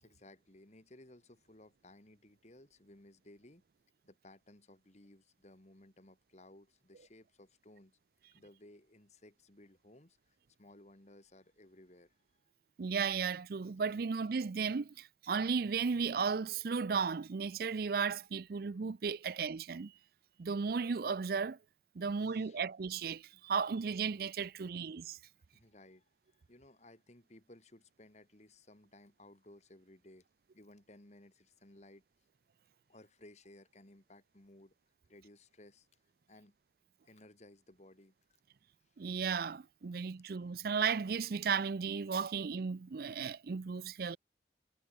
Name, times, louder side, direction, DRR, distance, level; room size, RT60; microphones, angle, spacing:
voice 1, 0.0-3.6 4.0-8.0 8.4-12.4 22.0-22.6 24.6-24.7 25.5-30.3 30.5-32.0 32.9-34.7 35.1-35.9 36.3-36.6 37.1-38.1, left 1 dB, 40° left, 2.2 m, -59 dB
voice 2, 12.8-19.9 20.4-21.6 22.0-25.2 39.0-44.2, right 5 dB, 55° right, 0.5 m, -35 dB
head